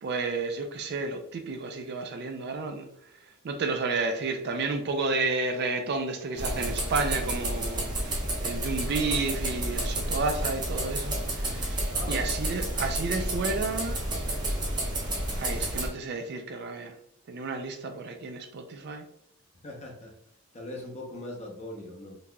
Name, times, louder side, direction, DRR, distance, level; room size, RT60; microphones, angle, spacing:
voice 1, 0.0-2.9 3.4-14.0 15.4-16.9 17.3-19.1, right 3 dB, 50° right, 5 dB, 0.4 m, -31 dB
sound 1, 6.4-15.9, right 1 dB, 20° right, 0.7 m, -30 dB
voice 2, 11.9-12.3 19.6-20.1 20.5-22.2, left 1 dB, 30° left, 0 dB, 0.7 m, -40 dB
3.9 x 2.9 x 2.2 m, 0.69 s
head